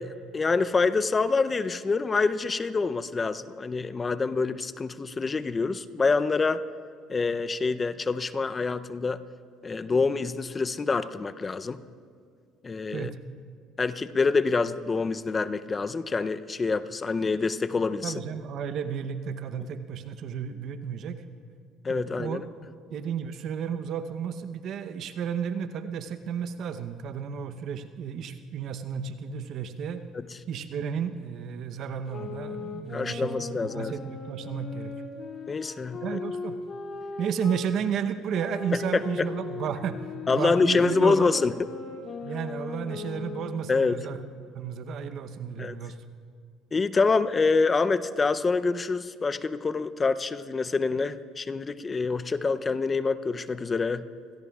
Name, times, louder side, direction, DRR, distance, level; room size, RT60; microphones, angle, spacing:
voice 1, 0.0-6.6 7.1-9.2 9.6-11.8 12.6-13.1 13.8-18.1 19.6-19.7 21.8-22.4 32.9-33.9 35.5-36.2 38.9-39.0 40.3-41.5 43.7-44.1 45.6-45.8 46.7-54.1, left 4 dB, 30° left, 13 dB, 0.6 m, -26 dB
voice 2, 18.0-21.2 21.9-22.4 22.9-30.1 30.5-33.5 33.7-34.9 36.0-36.6 37.2-40.0 40.3-41.4 42.2-44.2 44.5-46.0, right 7 dB, 60° right, 9 dB, 0.8 m, -33 dB
sound 1, 32.1-37.7 38.3-43.8, left 4 dB, 50° left, 1.9 m, -38 dB
26.5 x 17.0 x 2.4 m, 2.1 s
supercardioid pair, 75°, 0 cm